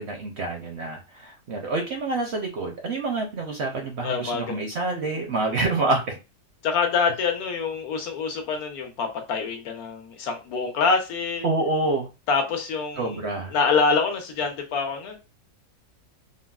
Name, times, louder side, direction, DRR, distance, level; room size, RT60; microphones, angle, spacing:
voice 1, 0.0-6.1 11.4-12.1 13.0-13.5, right 2 dB, 60° right, 0.7 m, -27 dB
voice 2, 4.0-4.7 6.6-11.4 12.3-13.2 13.5-15.2, left 5 dB, 80° left, 1.2 m, -25 dB
3.7 x 2.0 x 2.3 m
omnidirectional pair, 1.6 m